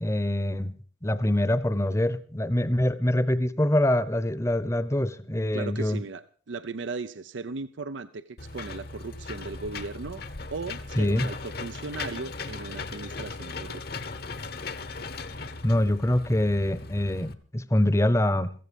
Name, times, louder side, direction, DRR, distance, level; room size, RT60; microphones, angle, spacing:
voice 1, 0.0-0.7 1.0-6.0 11.0-11.3 15.6-18.5, left 1 dB, 15° left, 0.8 m, -24 dB
voice 2, 5.5-10.2 10.5-13.8, right 4 dB, 90° right, 0.7 m, -37 dB
Engine / Mechanisms, 8.4-17.3, left 3 dB, 55° left, 1.0 m, -38 dB
15.5 x 15.5 x 5.3 m
head